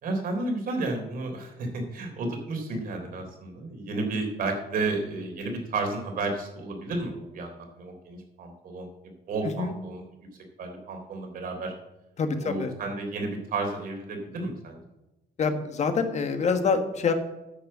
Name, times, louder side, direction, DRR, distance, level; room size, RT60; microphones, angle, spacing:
voice 1, 0.0-8.9 9.3-10.0 10.6-11.7 12.4-14.8, right 3 dB, 60° right, 3 dB, 3.5 m, -32 dB
voice 2, 12.2-12.7 15.4-17.1, left 5 dB, 45° left, 7 dB, 1.6 m, -26 dB
10.0 x 6.7 x 7.4 m, 0.97 s
cardioid pair, 110°, 17 cm